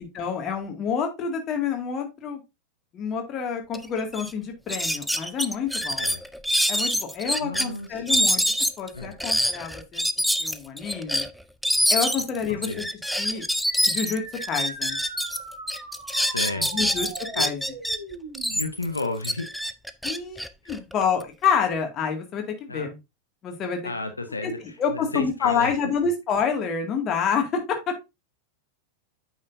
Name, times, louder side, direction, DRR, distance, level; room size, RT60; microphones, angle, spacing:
voice 1, 0.0-2.4 2.9-6.1 6.7-8.4 8.8-10.0 10.4-11.3 11.9-12.8 13.2-13.5 13.9-15.0 16.6-17.6 20.0-23.0 23.4-23.9 24.4-27.6, left 6 dB, 30° left, 3 dB, 2.1 m, -28 dB
sound 1, 3.7-3.8 4.1-4.3 4.7-7.7 8.1-15.4 15.7-18.0 18.3-21.2, equal, ahead, 0.5 m, -25 dB
voice 2, 7.4-8.2 8.9-9.1 12.5-12.9 16.3-16.9 17.3-17.5 18.5-19.5 20.6-20.7 22.7-22.9 23.8-25.8, left 2 dB, 80° left, 7 dB, 0.8 m, -33 dB
sound 2, 13.7-18.7, right 2 dB, 55° right, 3.7 m, -40 dB
8.6 x 6.2 x 2.6 m, 0.23 s
figure-of-eight pair, 90°, 0 cm